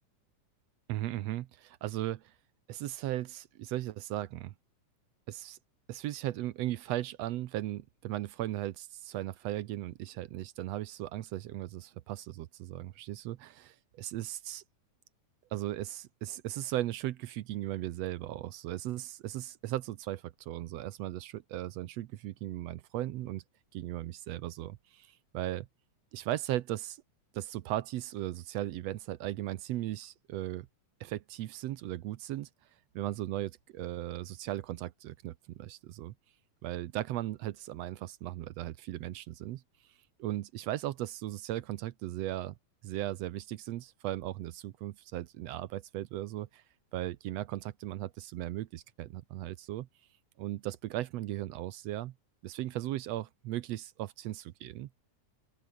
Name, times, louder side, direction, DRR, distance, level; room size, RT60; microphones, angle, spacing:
voice 1, 0.9-2.3 2.7-4.5 5.3-5.6 5.9-14.6 15.5-23.4 23.7-25.7 26.1-27.0 27.3-30.7 31.0-32.5 32.9-36.1 36.6-39.6 40.2-42.6 42.8-46.6 46.9-49.9 50.4-52.1 52.4-54.9, right 14 dB, 75° right, 1.6 m, -37 dB
open air
omnidirectional pair, 3.6 m